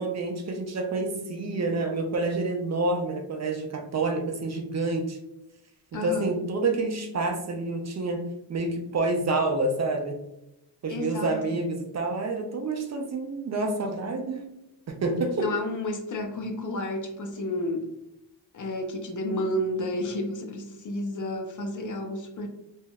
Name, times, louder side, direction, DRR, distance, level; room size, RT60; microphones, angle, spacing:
voice 1, 0.0-5.2 5.9-10.2 10.8-14.4 14.9-15.5, right 2 dB, 40° right, 4 dB, 0.5 m, -28 dB
voice 2, 5.9-6.3 10.9-11.4 15.4-17.9 18.5-22.5, left 1 dB, 45° left, 4 dB, 0.6 m, -31 dB
3.2 x 2.6 x 2.2 m, 0.87 s
cardioid pair, 90°, 44 cm